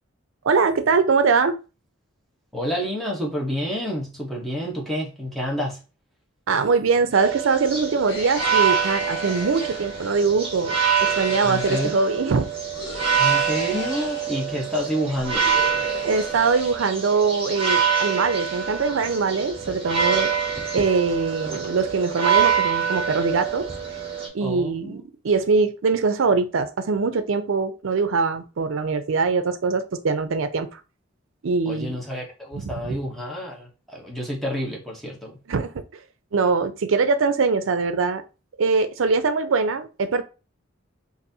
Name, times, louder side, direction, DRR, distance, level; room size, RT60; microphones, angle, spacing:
voice 1, 0.4-1.6 6.5-12.5 16.0-20.3 20.7-23.7 24.3-30.8 31.4-32.0 32.5-33.0 35.5-35.8 36.3-38.2 38.6-40.2, right 4 dB, 75° right, 0.5 m, -22 dB
voice 2, 2.5-5.8 11.4-11.9 13.2-15.4 24.4-25.0 31.7-35.4, equal, ahead, 0.9 m, -29 dB
sound 1, 7.1-24.3, right 7 dB, 25° right, 1.0 m, -25 dB
sound 2, 8.1-10.3 11.0-11.9 12.7-14.4 15.2-16.7, left 2 dB, 55° left, 1.4 m, -36 dB
4.0 x 2.6 x 2.7 m
head